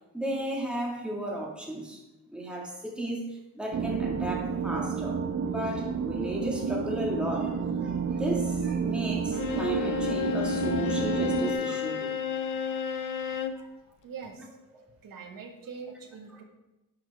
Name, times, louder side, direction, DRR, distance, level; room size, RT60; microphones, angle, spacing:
voice 1, 0.1-2.0 2.3-3.2 3.5-12.2 13.6-13.7 14.7-14.8, right 1 dB, 5° right, -2 dB, 1.9 m, -34 dB
sound 1, 3.7-11.5, right 6 dB, 45° right, 0.6 m, -30 dB
Bowed string instrument, 9.3-13.7, left 6 dB, 70° left, 0.7 m, -31 dB
voice 2, 14.0-14.6 15.0-16.4, right 5 dB, 85° right, 2 dB, 1.4 m, -43 dB
10.5 x 5.1 x 4.8 m, 0.99 s
wide cardioid pair, 140°, 33 cm